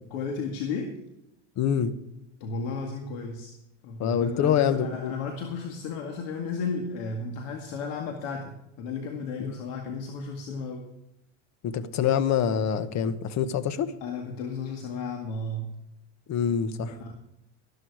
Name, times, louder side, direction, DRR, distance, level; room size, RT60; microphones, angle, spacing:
voice 1, 0.1-1.0 2.4-3.5 3.8-10.9 14.0-15.8 16.9-17.1, left 4 dB, 75° left, 3 dB, 2.1 m, -34 dB
voice 2, 1.6-1.9 4.0-5.2 9.4-9.5 11.6-13.9 16.3-17.1, left 8 dB, 45° left, 13 dB, 1.2 m, -26 dB
13.5 x 12.5 x 4.8 m, 0.86 s
supercardioid pair, 115°, 39 cm